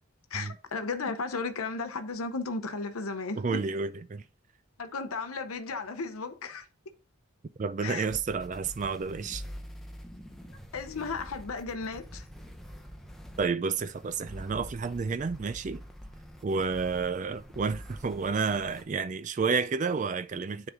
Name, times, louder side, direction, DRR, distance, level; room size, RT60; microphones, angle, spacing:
voice 1, 0.3-3.6 4.8-6.7 7.8-8.1 10.7-12.2, left 4 dB, 85° left, 0.8 m, -34 dB
voice 2, 3.4-4.2 7.6-9.4 13.4-15.8 16.4-20.7, right 5 dB, 35° right, 0.3 m, -30 dB
sound 1, 8.1-18.8, equal, ahead, 0.7 m, -46 dB
9.7 x 3.9 x 3.6 m
head